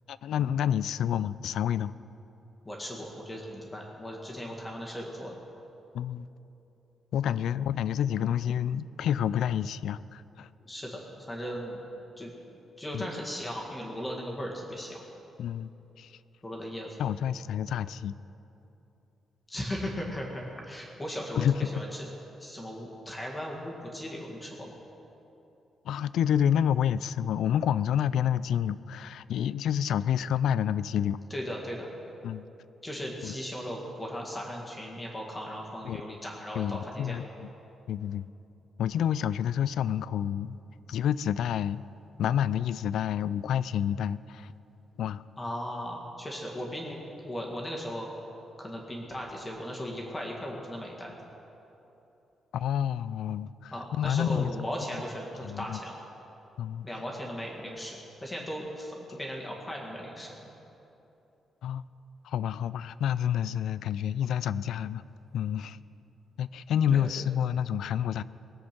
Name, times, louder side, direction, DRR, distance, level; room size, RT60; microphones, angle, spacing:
voice 1, 0.1-1.9 5.9-6.3 7.1-10.5 12.9-13.1 15.4-15.7 16.0-16.1 17.0-18.1 21.4-21.6 25.9-31.2 32.2-32.4 33.2-33.3 35.8-36.0 36.6-37.5 37.9-38.3 38.8-40.6 40.9-41.8 42.2-44.5 45.0-45.2 52.5-54.7 55.4-55.8 56.6-56.8 61.6-61.8 62.2-65.0 65.3-65.8 66.4-68.2, left 9 dB, 75° left, 17 dB, 0.3 m, -29 dB
voice 2, 2.7-5.4 10.6-11.8 12.2-12.3 12.8-15.0 16.4-17.0 19.5-22.0 22.4-24.7 31.3-31.9 32.8-37.2 45.4-48.1 48.6-51.2 53.7-56.0 56.8-60.3 66.9-67.2, equal, 15° left, -2 dB, 1.9 m, -37 dB
19.5 x 7.9 x 6.0 m, 3.0 s
cardioid pair, 150°, 0 cm